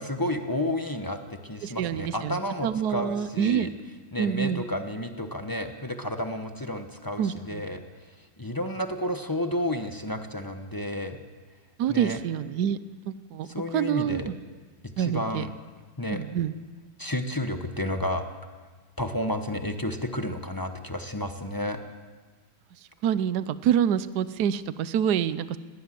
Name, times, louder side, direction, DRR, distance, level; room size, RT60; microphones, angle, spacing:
voice 1, 0.0-3.7 4.1-11.2 11.9-12.2 13.4-14.3 15.0-15.5 16.0-16.2 17.0-18.2 19.0-21.8, left 1 dB, 20° left, 6 dB, 0.6 m, -31 dB
voice 2, 1.6-3.7 4.2-4.6 7.2-7.7 11.8-12.8 13.0-13.5 13.7-14.2 15.0-15.4 16.1-16.5 23.0-25.6, right 9 dB, 60° right, 15 dB, 1.2 m, -26 dB
19.5 x 18.5 x 7.7 m, 1.4 s
omnidirectional pair, 2.3 m